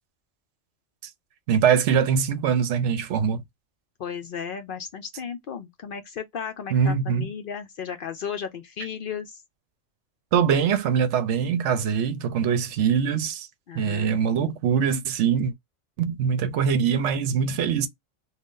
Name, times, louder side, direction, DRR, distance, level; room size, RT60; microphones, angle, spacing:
voice 1, 1.5-3.4 6.7-7.3 10.3-13.5 13.7-15.5 16.0-17.9, right 7 dB, 70° right, 0.8 m, -23 dB
voice 2, 4.0-9.4 13.7-14.5, left 7 dB, 60° left, 0.6 m, -35 dB
2.5 x 2.3 x 3.6 m
omnidirectional pair, 1.3 m